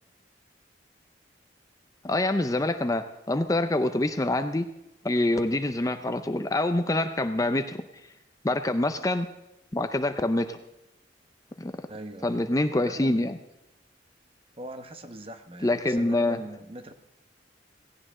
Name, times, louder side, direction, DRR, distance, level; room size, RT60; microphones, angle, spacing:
voice 1, 2.0-4.7 5.0-7.8 8.4-9.3 9.7-10.6 11.6-11.7 12.2-13.4 15.6-16.4, left 1 dB, 20° left, 9 dB, 0.5 m, -26 dB
voice 2, 11.9-12.4 12.8-13.3 14.6-16.9, right 1 dB, 30° right, 7 dB, 1.0 m, -41 dB
17.5 x 16.5 x 3.7 m, 0.92 s
head